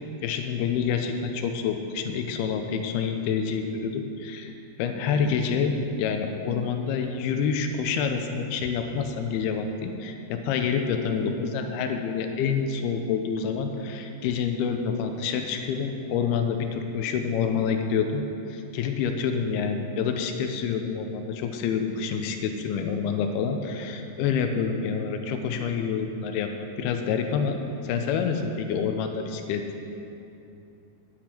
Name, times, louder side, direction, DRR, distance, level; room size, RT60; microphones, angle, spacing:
voice 1, 0.2-4.5 4.8-26.5 26.8-27.6 27.8-29.6, left 6 dB, 85° left, 5 dB, 2.6 m, -27 dB
10.0 x 9.5 x 4.4 m, 2.8 s
omnidirectional pair, 4.5 m